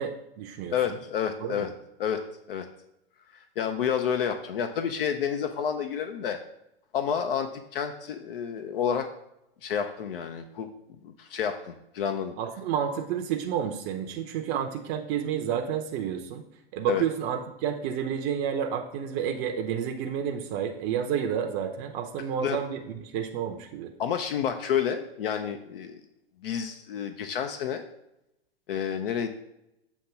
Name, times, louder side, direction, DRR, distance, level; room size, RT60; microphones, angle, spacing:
voice 1, 0.0-1.0 1.4-1.7 12.4-16.4 16.7-23.9, right 8 dB, 40° right, 4 dB, 0.7 m, -30 dB
voice 2, 0.7-1.7 2.0-2.7 3.3-6.4 6.9-9.1 9.6-10.7 11.0-12.4 16.9-17.0 22.4-22.6 24.0-26.0 26.4-27.8 28.7-29.3, left 8 dB, 65° left, 6 dB, 0.6 m, -29 dB
7.1 x 2.9 x 5.6 m, 0.85 s
figure-of-eight pair, 95°, 30 cm